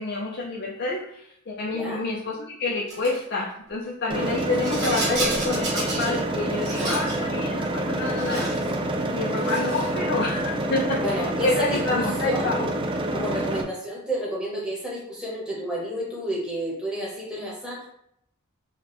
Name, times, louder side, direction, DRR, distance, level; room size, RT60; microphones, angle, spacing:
voice 1, 0.0-8.5 9.1-12.7 13.3-13.4, left 3 dB, 50° left, -2 dB, 0.5 m, -28 dB
voice 2, 1.7-2.0 10.0-10.1 11.0-12.5 13.1-17.9, equal, 5° right, -5 dB, 1.1 m, -31 dB
Rattle, 2.9-3.2 4.3-6.2 6.5-7.2 8.0-8.7 9.3-10.0, right 2 dB, 55° right, 1.7 m, -31 dB
sound 1, 4.1-13.6, right 1 dB, 25° right, 0.4 m, -27 dB
4.8 x 2.3 x 3.5 m, 0.72 s
head